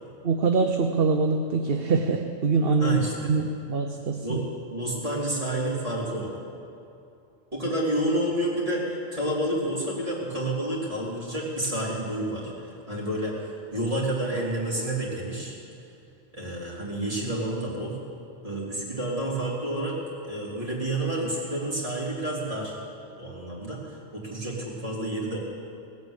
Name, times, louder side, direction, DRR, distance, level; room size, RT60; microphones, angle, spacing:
voice 1, 0.2-3.0 3.3-4.4, right 4 dB, 55° right, 5 dB, 0.9 m, -24 dB
voice 2, 2.8-3.3 4.2-4.4 4.7-6.3 7.5-15.5 16.3-17.9 18.4-20.0 20.2-22.8 23.1-25.4, right 1 dB, 30° right, -5 dB, 3.5 m, -29 dB
18.0 x 8.7 x 8.0 m, 2.6 s
omnidirectional pair, 1.3 m